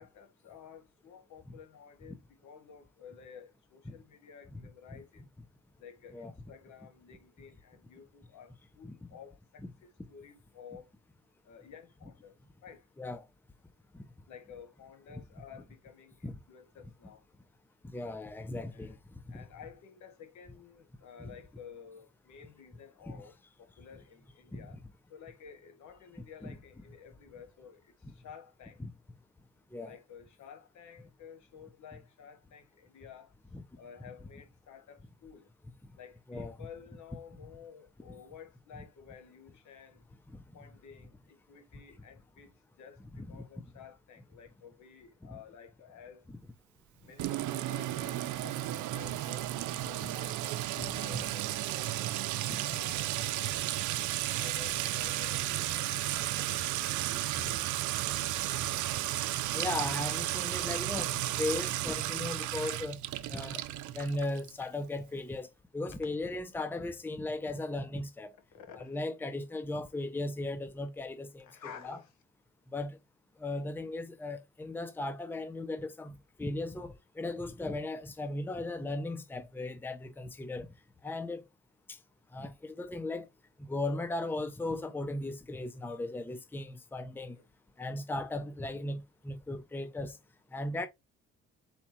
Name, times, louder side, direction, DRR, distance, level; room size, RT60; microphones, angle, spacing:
voice 1, 0.0-5.2 5.8-10.9 11.4-12.3 12.6-12.8 14.3-17.2 18.7-19.0 19.3-24.8 25.1-27.9 28.2-28.8 29.8-33.3 33.8-35.5 36.0-40.0 40.5-42.5 42.8-46.2 47.0-52.1 52.7-53.6 54.4-58.2 68.5-68.9 71.4-72.1 87.2-87.4, left 7 dB, 75° left, 1.2 m, -52 dB
voice 2, 17.8-19.4 23.1-23.2 24.5-24.7 26.4-26.6 28.8-28.9 29.7-29.9 33.5-33.6 36.3-36.7 40.3-40.4 43.1-43.4 45.2-45.4 46.3-46.4 49.8-50.1 50.8-51.3 52.5-52.6 57.4-57.5 59.5-63.0 63.3-63.6 63.9-65.5 65.7-68.4 68.8-71.5 71.8-72.0 72.7-73.0 73.4-80.7 81.0-81.4 81.9-82.0 82.3-83.3 83.6-87.4 87.8-90.2 90.5-90.9, left 2 dB, 5° left, 0.6 m, -37 dB
Sink (filling or washing) / Trickle dribble / Fill (with liquid), 47.2-64.6, right 14 dB, 75° right, 0.5 m, -33 dB
4.2 x 2.4 x 4.2 m
cardioid pair, 90°, 30 cm